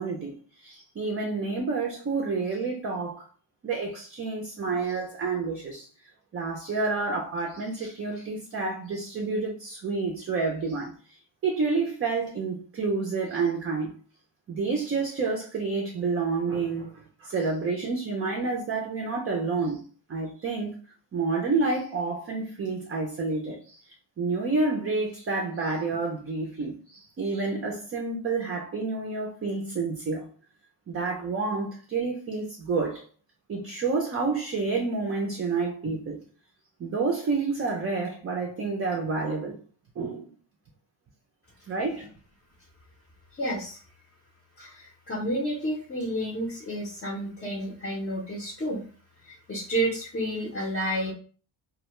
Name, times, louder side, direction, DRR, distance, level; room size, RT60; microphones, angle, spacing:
voice 1, 0.0-3.2 3.6-5.9 6.3-13.9 14.5-19.8 20.1-20.7 21.1-30.3 30.9-33.1 33.5-36.2 36.8-39.6 40.0-40.3 41.7-42.1, right 4 dB, 30° right, 0.4 m, -29 dB
voice 2, 43.3-43.8 44.6-48.8 49.2-51.1, right 1 dB, 25° left, 0.5 m, -30 dB
2.2 x 2.1 x 2.9 m
cardioid pair, 135°, 47 cm